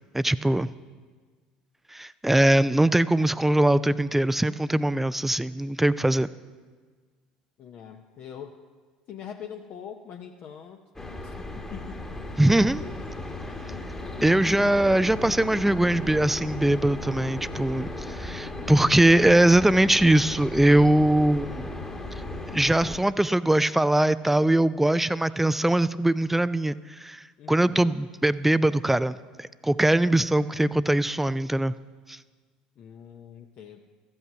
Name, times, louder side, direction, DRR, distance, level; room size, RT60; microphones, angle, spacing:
voice 1, 0.1-0.7 1.9-6.3 12.4-12.8 14.2-21.7 22.5-31.7 32.1-32.2, right 1 dB, 5° right, 16 dB, 0.3 m, -22 dB
voice 2, 7.6-8.6 9.1-10.8 11.2-12.1 12.8-13.0 27.4-27.9 32.8-33.8, left 8 dB, 45° left, 4 dB, 0.6 m, -43 dB
sound 1, 11.0-23.0, left 2 dB, 15° left, 1.2 m, -36 dB
14.0 x 5.6 x 7.9 m, 1.5 s
hypercardioid pair, 70°, 4 cm